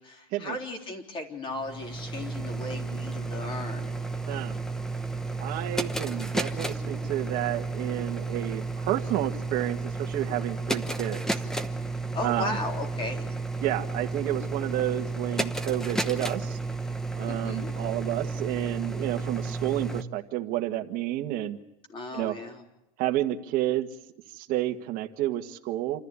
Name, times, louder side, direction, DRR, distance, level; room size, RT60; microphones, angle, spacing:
voice 1, 0.0-3.9 12.1-13.2 17.3-17.8 21.9-22.6, left 2 dB, 25° left, 3 dB, 3.7 m, -36 dB
sound 1, 1.5-20.0, right 3 dB, 5° left, 0.9 m, -32 dB
voice 2, 5.4-11.2 12.2-12.6 13.6-16.6 17.2-21.6 22.1-22.4 23.0-23.9 24.3-26.0, right 14 dB, 45° right, 6 dB, 1.7 m, -30 dB
28.0 x 14.0 x 9.8 m, 0.91 s
supercardioid pair, 155°, 20 cm